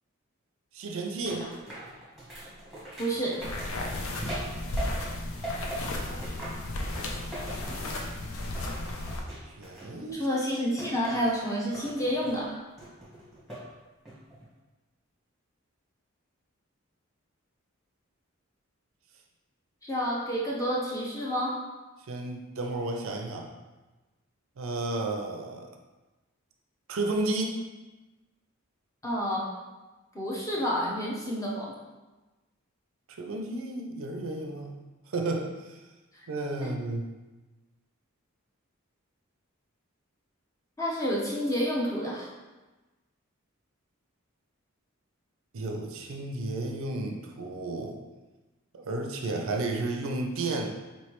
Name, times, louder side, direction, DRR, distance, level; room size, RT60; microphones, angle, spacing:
voice 1, 0.7-1.5 9.6-10.3 22.1-23.5 24.6-25.7 26.9-27.6 33.1-34.8 35.1-35.8 36.3-37.1 45.5-48.0 48.7-50.7, right 2 dB, 65° right, 3 dB, 0.5 m, -32 dB
sound 1, 1.3-5.2 5.4-8.2 8.5-10.2 10.8-11.4 11.7-12.4 12.8-13.7 14.1-14.5, right 1 dB, ahead, 1.1 m, -40 dB
voice 2, 3.0-3.4 10.2-12.5 19.8-21.6 29.0-29.5 30.1-31.7 36.6-36.7 40.8-42.3, equal, 15° left, -4 dB, 0.6 m, -29 dB
sound 2, 3.4-9.2, left 1 dB, 70° left, 0.5 m, -34 dB
4.3 x 3.2 x 3.0 m, 1.1 s
head